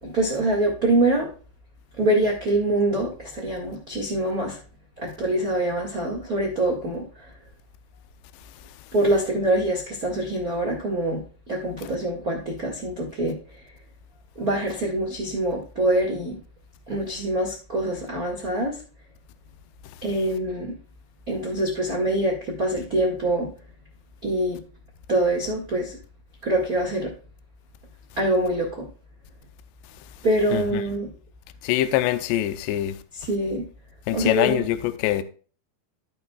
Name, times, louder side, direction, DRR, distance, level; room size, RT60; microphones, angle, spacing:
voice 1, 0.0-1.3 2.0-4.6 5.0-7.3 8.9-11.2 11.5-13.4 14.3-16.3 16.9-18.8 20.0-20.7 21.3-23.5 24.2-24.6 25.1-26.0 26.4-27.1 28.2-28.8 30.2-31.1 33.3-33.6 34.1-34.7, right 1 dB, 85° right, 0.8 m, -24 dB
voice 2, 30.5-30.8 31.6-33.0 34.1-35.2, left 13 dB, 85° left, 2.7 m, -24 dB
15.0 x 6.3 x 2.4 m
omnidirectional pair, 5.3 m